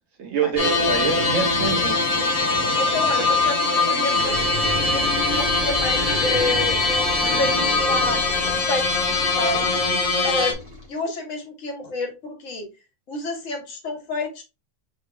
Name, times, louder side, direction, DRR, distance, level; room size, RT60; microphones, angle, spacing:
voice 1, 0.2-2.3, right 6 dB, 75° right, 1.6 m, -26 dB
sound 1, 0.5-10.9, equal, 40° right, 1.5 m, -32 dB
sound 2, 0.6-10.5, left 3 dB, 40° left, 0.6 m, -22 dB
voice 2, 2.8-9.7 10.2-10.6 10.9-12.7 13.1-14.4, left 2 dB, 70° left, 1.4 m, -29 dB
5.6 x 3.0 x 2.4 m
omnidirectional pair, 1.4 m